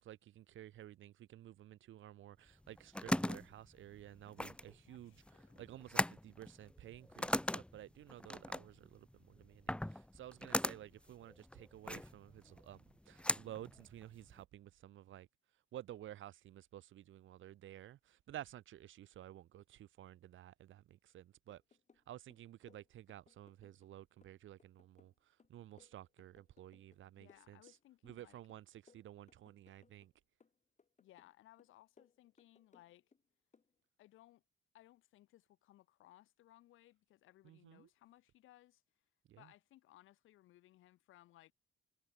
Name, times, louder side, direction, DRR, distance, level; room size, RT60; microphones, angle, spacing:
voice 1, 0.0-5.2 5.6-15.3 15.7-21.6 22.1-27.8 28.0-30.1 37.4-37.9 39.3-39.5, right 12 dB, 75° right, 3.0 m, -53 dB
sound 1, 2.5-14.4, left 1 dB, 5° left, 1.8 m, -40 dB
voice 2, 4.9-5.6 27.2-28.4 31.0-33.1 34.0-34.4 34.7-38.8 39.4-41.5, left 15 dB, 90° left, 6.2 m, -64 dB
sound 2, 21.5-22.1 22.3-23.9 24.2-27.0 27.3-28.2 28.5-30.1 30.4-31.3 31.6-33.2 33.5-33.7, left 5 dB, 35° left, 6.2 m, -69 dB
cardioid pair, 90°, 20 cm